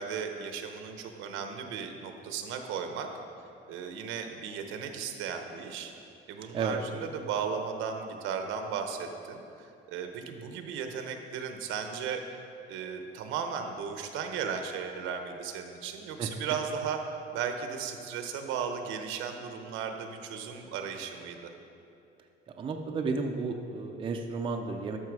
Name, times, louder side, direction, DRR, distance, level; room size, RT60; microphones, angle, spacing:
voice 1, 0.0-3.1 3.7-5.9 6.3-12.2 12.7-17.0 17.3-21.5, right 6 dB, 85° right, 5 dB, 1.0 m, -36 dB
voice 2, 22.6-25.0, right 4 dB, 25° right, 3 dB, 0.5 m, -32 dB
13.0 x 5.8 x 4.7 m, 2.6 s
cardioid pair, 165°, 20 cm